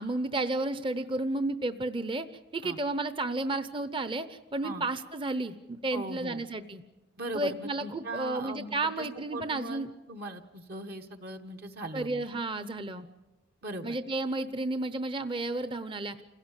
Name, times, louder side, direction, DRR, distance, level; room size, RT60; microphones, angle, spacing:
voice 1, 0.0-2.3 2.5-6.8 7.3-9.9 11.9-13.1 13.8-16.2, right 2 dB, 30° right, 11 dB, 0.8 m, -32 dB
voice 2, 5.9-6.4 7.2-9.8 10.1-12.3 13.6-14.0, right 1 dB, 55° right, 5 dB, 1.2 m, -39 dB
28.0 x 16.5 x 8.2 m, 1.1 s
head